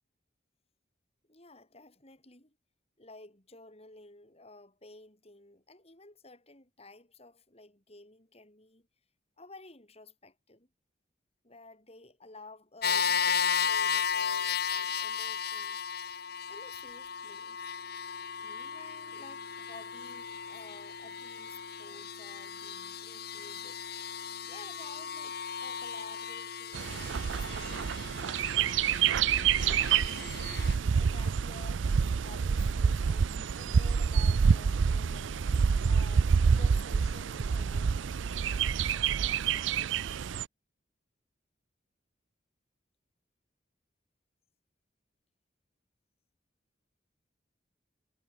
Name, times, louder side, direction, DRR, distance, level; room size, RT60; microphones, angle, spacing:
voice 1, 1.3-2.6 3.0-8.9 9.4-10.7 11.4-15.8 16.5-17.7 18.4-23.9 24.4-28.6 29.5-35.5 35.9-38.1, left 2 dB, 35° left, 6.9 m, -53 dB
sound 1, 12.8-30.7, left 7 dB, 55° left, 1.9 m, -35 dB
Bird, 26.7-40.4, right 6 dB, 85° right, 0.4 m, -27 dB
head